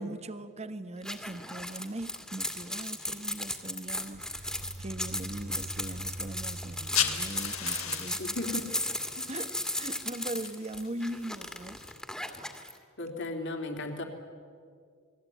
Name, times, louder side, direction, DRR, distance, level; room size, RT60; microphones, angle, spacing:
voice 1, 0.0-8.2 9.3-11.8, right 1 dB, 30° right, 1.2 m, -40 dB
sound 1, 1.0-12.7, left 1 dB, 5° left, 2.2 m, -36 dB
sound 2, 4.0-9.3, right 1 dB, 50° right, 1.6 m, -44 dB
sound 3, 6.7-11.9, left 9 dB, 75° left, 2.6 m, -37 dB
voice 2, 8.2-8.6 9.2-9.3 13.0-14.0, left 2 dB, 60° left, 3.4 m, -35 dB
29.5 x 21.5 x 9.2 m
head